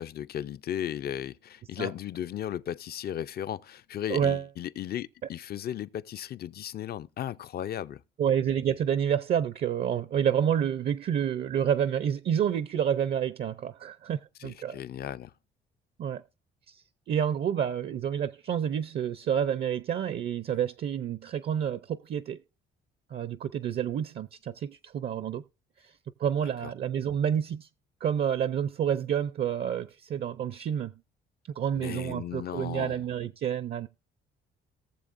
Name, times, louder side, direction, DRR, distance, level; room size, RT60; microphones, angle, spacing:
voice 1, 0.0-8.0 14.4-15.3 26.6-26.7 31.7-33.0, left 10 dB, 55° left, 0.5 m, -36 dB
voice 2, 4.1-4.4 8.2-14.8 16.0-16.2 17.1-22.4 23.1-25.4 26.2-27.7 28.0-30.9 31.6-33.9, right 9 dB, 55° right, 0.5 m, -29 dB
18.5 x 7.0 x 2.5 m
cardioid pair, 90°, 20 cm